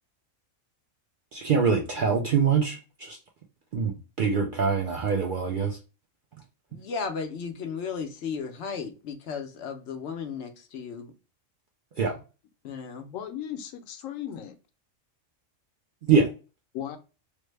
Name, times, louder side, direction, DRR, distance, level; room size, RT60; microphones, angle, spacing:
voice 1, 1.3-3.2 3.7-5.8 12.0-12.2 16.1-16.3, right 5 dB, 60° right, 0.5 m, -24 dB
voice 2, 6.7-11.1 12.6-13.1, left 5 dB, 65° left, 0.8 m, -35 dB
voice 3, 13.1-14.5 16.7-17.0, left 10 dB, 85° left, 1.0 m, -36 dB
3.3 x 2.1 x 3.1 m
omnidirectional pair, 1.3 m